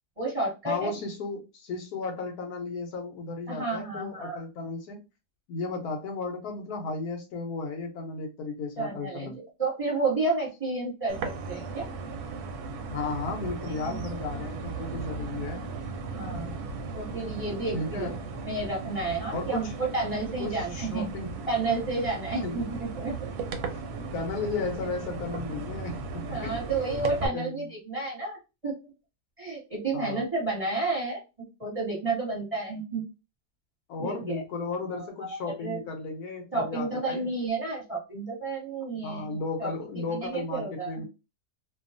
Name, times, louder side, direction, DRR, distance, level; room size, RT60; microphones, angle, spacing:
voice 1, 0.2-0.9 3.5-4.4 8.8-9.3 9.6-11.9 13.7-14.0 16.1-16.5 16.9-18.1 18.5-21.0 21.5-22.7 23.0-23.1 26.3-28.4 28.6-28.7 29.4-31.2 31.6-33.0 34.0-34.4 34.9-35.8 36.5-39.7 40.1-41.0, right 3 dB, 25° right, 1.1 m, -31 dB
voice 2, 0.7-5.0 5.5-9.4 12.9-15.6 17.7-18.2 19.3-19.7 20.4-21.4 22.4-22.7 23.7-23.9 24.1-26.0 26.4-26.6 27.3-27.7 29.9-30.3 33.9-37.3 39.0-41.0, left 3 dB, 75° left, 1.1 m, -34 dB
sound 1, 11.1-27.3, right 4 dB, 70° right, 1.0 m, -36 dB
2.7 x 2.3 x 2.5 m
omnidirectional pair, 1.8 m